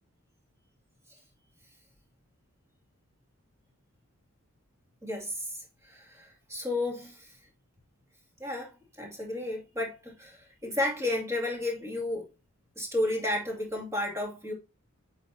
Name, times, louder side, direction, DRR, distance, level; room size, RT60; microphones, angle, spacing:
voice 1, 5.0-7.3 8.4-8.7 9.0-12.3 12.8-14.5, left 1 dB, 15° right, 2.4 m, -32 dB
8.2 x 6.0 x 2.8 m
head